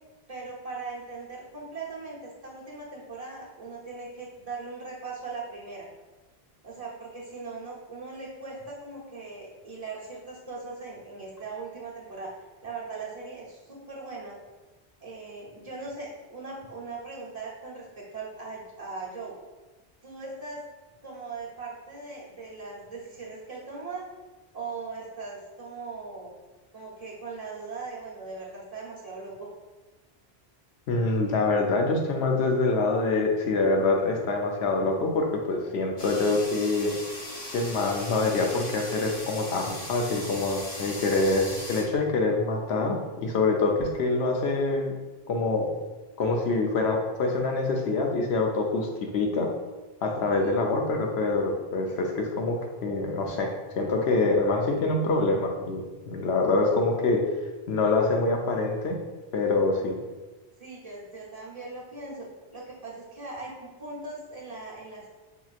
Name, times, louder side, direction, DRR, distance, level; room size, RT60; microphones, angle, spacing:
voice 1, 0.3-5.9 6.6-12.3 12.6-14.4 15.0-19.3 20.0-20.6 21.0-24.0 24.5-26.3 26.7-29.5 50.0-50.6 60.6-62.3 62.5-65.1, right 3 dB, 40° right, -6 dB, 1.0 m, -39 dB
voice 2, 30.9-36.9 37.5-44.9 45.3-45.7 46.2-49.5 50.0-57.2 57.7-59.0 59.3-60.0, left 3 dB, 85° left, 2 dB, 0.9 m, -25 dB
sound 1, 36.0-41.8, left 1 dB, 70° left, 1.4 m, -39 dB
5.5 x 2.9 x 2.4 m, 1.2 s
omnidirectional pair, 1.1 m